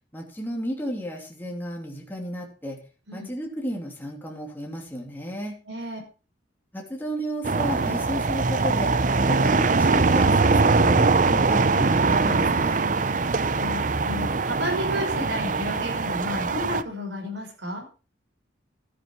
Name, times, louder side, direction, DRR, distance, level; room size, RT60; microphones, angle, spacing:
voice 1, 0.1-2.8 3.1-5.5 6.7-8.9 9.3-12.8, equal, 10° left, 0 dB, 2.9 m, -33 dB
voice 2, 5.7-6.0 13.5-17.8, left 1 dB, 75° right, 1 dB, 5.7 m, -32 dB
sound 1, 7.4-16.8, right 3 dB, 40° right, 0.6 m, -22 dB
13.5 x 9.6 x 4.6 m, 0.33 s
head